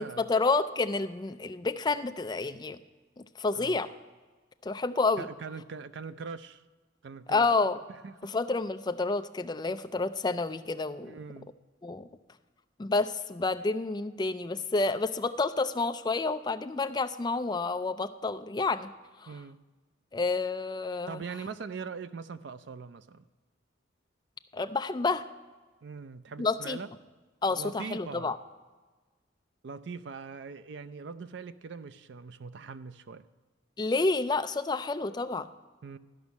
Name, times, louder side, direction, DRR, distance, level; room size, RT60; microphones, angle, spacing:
voice 1, 0.0-2.8 3.2-3.9 4.6-5.3 7.3-7.8 8.2-11.1 11.8-12.1 12.8-18.9 19.2-19.3 20.1-21.2 24.5-25.3 26.4-26.8 27.4-28.4 33.8-35.5, left 3 dB, 20° left, 9 dB, 0.4 m, -29 dB
voice 2, 5.2-6.6 7.0-7.5 8.0-8.3 11.0-11.5 19.3-19.6 21.1-23.2 25.8-26.9 27.5-28.3 29.6-33.2 35.8-36.0, right 5 dB, 65° right, 12 dB, 0.4 m, -41 dB
13.0 x 5.3 x 7.0 m, 1.3 s
head